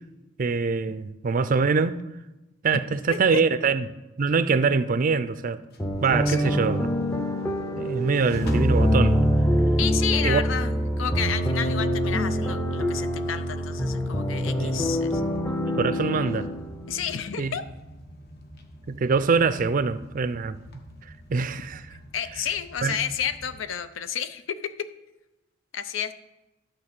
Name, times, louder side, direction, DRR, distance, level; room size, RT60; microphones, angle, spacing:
voice 1, 0.4-2.0 2.6-3.9 4.2-5.6 6.0-6.9 7.8-9.2 10.2-10.4 14.6-14.8 15.6-16.5 17.4-17.5 18.9-20.6 21.3-21.8 22.8-23.0, right 4 dB, 45° right, 0.4 m, -24 dB
voice 2, 3.1-3.4 6.3-6.6 9.8-15.4 16.9-17.7 22.1-24.9 25.7-26.1, left 8 dB, 80° left, 0.6 m, -31 dB
sound 1, 5.7-23.6, left 1 dB, 55° left, 1.1 m, -44 dB
sound 2, 5.8-17.5, equal, 10° left, 0.6 m, -25 dB
11.0 x 3.9 x 6.6 m
head